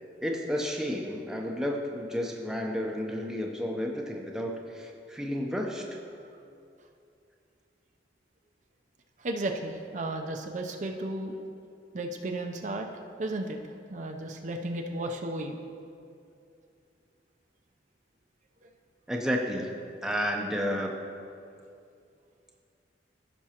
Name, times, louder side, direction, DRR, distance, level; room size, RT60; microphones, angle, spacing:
voice 1, 0.2-5.8 19.1-19.7 20.0-20.9, equal, 5° right, 0 dB, 0.6 m, -31 dB
voice 2, 9.2-11.3 11.9-12.9 13.2-13.6 13.9-15.6, right 2 dB, 45° right, 3 dB, 0.5 m, -34 dB
15.0 x 6.0 x 2.9 m, 2.5 s
head